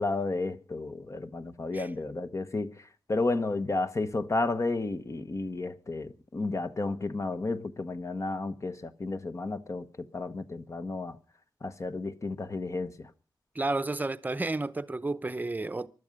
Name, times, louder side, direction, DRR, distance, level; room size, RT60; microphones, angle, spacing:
voice 1, 0.0-2.7 3.1-9.8 10.1-11.2 11.6-13.1, left 3 dB, 40° left, 1.1 m, -32 dB
voice 2, 13.5-15.9, right 2 dB, 20° right, 0.7 m, -31 dB
20.0 x 12.5 x 5.3 m
wide cardioid pair, 130°, 8 cm